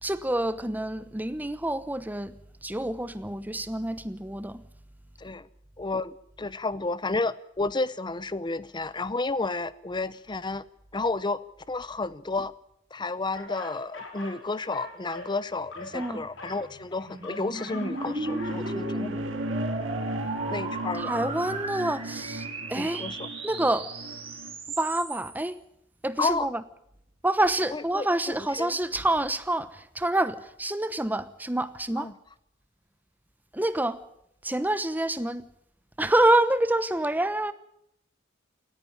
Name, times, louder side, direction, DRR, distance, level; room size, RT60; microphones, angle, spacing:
voice 1, 0.0-2.4 2.6-4.6 15.9-16.3 21.1-23.0 23.4-23.9 24.8-25.6 26.0-26.6 27.2-32.1 33.5-34.0 34.4-35.4 36.0-37.5, right 1 dB, 10° right, 1.0 m, -27 dB
voice 2, 5.8-10.6 10.9-11.4 11.7-12.5 12.9-19.2 20.5-21.1 22.8-23.3 26.2-26.5 27.7-28.8 32.0-32.1, left 3 dB, 20° left, 0.7 m, -31 dB
sound 1, 13.3-14.4 14.7-18.7, left 2 dB, 70° left, 5.1 m, -42 dB
sound 2, 15.8-25.5, right 2 dB, 30° right, 3.4 m, -37 dB
sound 3, 17.9-24.6, right 1 dB, 70° right, 2.5 m, -35 dB
18.5 x 14.5 x 10.0 m
head